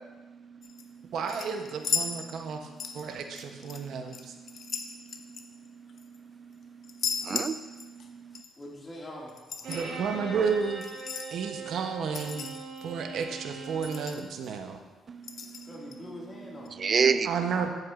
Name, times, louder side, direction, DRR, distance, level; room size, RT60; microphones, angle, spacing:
sound 1, 0.6-0.8 1.3-2.5 2.8-3.8 4.1-6.2 6.8-8.1 8.3-8.5 9.3-9.8 10.8-11.3 12.1-12.8 13.2-13.3 13.5-13.6 13.8-14.5 15.2-16.0 16.7-16.8, left 6 dB, 55° left, 0.6 m, -35 dB
voice 1, 1.1-2.6 2.9-4.3 9.7-10.8 11.3-12.5 12.8-14.8 17.2-17.7, right 6 dB, 70° right, 5 dB, 0.8 m, -32 dB
voice 2, 7.2-8.4 15.1-17.6, right 5 dB, 40° right, 12 dB, 0.3 m, -30 dB
voice 3, 8.6-10.3 15.6-16.8, left 1 dB, 25° left, -4 dB, 2.0 m, -44 dB
Bowed string instrument, 9.6-14.1, right 4 dB, 85° right, 1.8 m, -40 dB
9.3 x 7.6 x 2.5 m, 1.3 s
cardioid pair, 90°, 0 cm